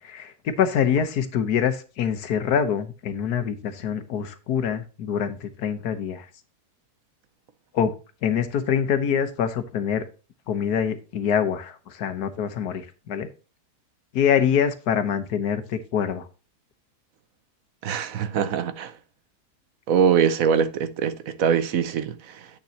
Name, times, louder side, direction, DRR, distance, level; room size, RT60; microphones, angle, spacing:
voice 1, 0.0-6.3 7.7-7.9 8.2-10.0 10.5-13.3 14.1-16.3, left 8 dB, 80° left, 1.5 m, -25 dB
voice 2, 17.8-18.9 19.9-22.5, right 7 dB, 65° right, 1.1 m, -23 dB
8.3 x 6.7 x 2.9 m
omnidirectional pair, 1.6 m